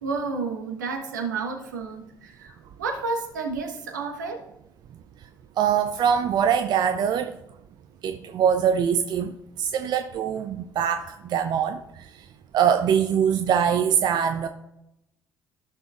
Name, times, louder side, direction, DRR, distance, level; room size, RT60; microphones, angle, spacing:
voice 1, 0.0-4.5, right 4 dB, 75° right, 3 dB, 1.1 m, -31 dB
voice 2, 5.6-7.3 8.0-9.3 9.6-11.8 12.5-14.5, right 8 dB, 45° right, 8 dB, 0.5 m, -23 dB
14.0 x 6.2 x 2.4 m, 0.85 s
figure-of-eight pair, 50°, 10 cm